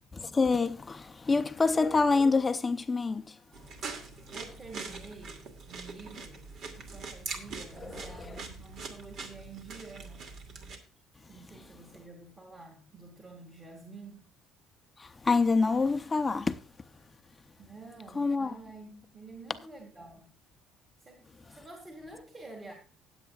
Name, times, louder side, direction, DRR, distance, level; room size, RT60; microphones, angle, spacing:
voice 1, 0.1-3.4 7.8-8.4 15.0-16.9 18.1-18.5, left 4 dB, 20° left, 0.7 m, -27 dB
sound 1, 3.5-10.8, right 4 dB, 55° right, 2.5 m, -43 dB
voice 2, 4.3-10.3 11.3-14.2 17.6-20.3 21.0-22.7, right 3 dB, 15° right, 2.2 m, -49 dB
19.0 x 8.1 x 2.4 m
cardioid pair, 140°, 0 cm